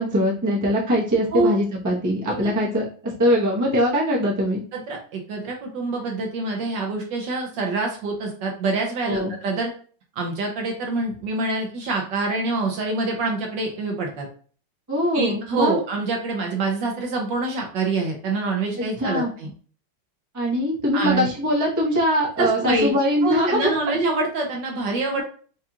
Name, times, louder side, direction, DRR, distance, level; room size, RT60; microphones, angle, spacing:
voice 1, 0.0-4.6 9.0-9.3 14.9-15.8 19.0-19.3 20.3-23.7 25.2-25.3, equal, 20° right, -5 dB, 0.5 m, -22 dB
voice 2, 4.7-9.7 10.2-14.3 15.1-19.5 20.9-21.3 22.4-23.0 23.2-25.2, right 3 dB, 65° right, 1 dB, 1.3 m, -25 dB
4.7 x 2.4 x 2.8 m, 0.42 s
omnidirectional pair, 2.4 m